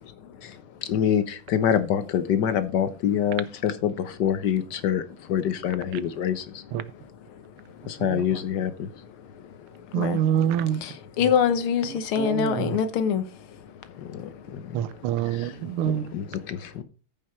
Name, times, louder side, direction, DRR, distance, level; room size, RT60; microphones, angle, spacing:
voice 1, 0.9-6.6 7.9-8.9 14.0-14.8 15.3-15.5 15.8-16.8, left 9 dB, 60° left, 1.4 m, -26 dB
voice 2, 9.9-10.8 12.2-12.7 14.7-16.0, right 10 dB, 85° right, 1.6 m, -25 dB
voice 3, 10.8-13.2, left 7 dB, 80° left, 1.9 m, -24 dB
14.0 x 5.7 x 4.4 m
omnidirectional pair, 2.3 m